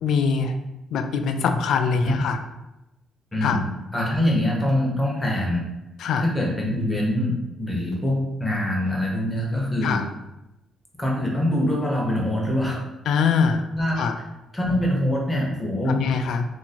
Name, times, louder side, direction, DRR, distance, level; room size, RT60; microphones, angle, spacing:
voice 1, 0.0-0.5 0.9-2.4 3.4-3.6 6.0-6.3 9.8-10.0 13.1-13.6 14.0-14.2 15.9-16.5, left 5 dB, 75° left, 7 dB, 0.3 m, -23 dB
voice 2, 3.3-3.6 3.9-5.7 6.2-10.0 11.0-12.8 13.8-14.0 14.5-16.0, left 1 dB, 15° left, -2 dB, 1.0 m, -24 dB
2.8 x 2.6 x 4.2 m, 0.95 s
cardioid pair, 90°, 0 cm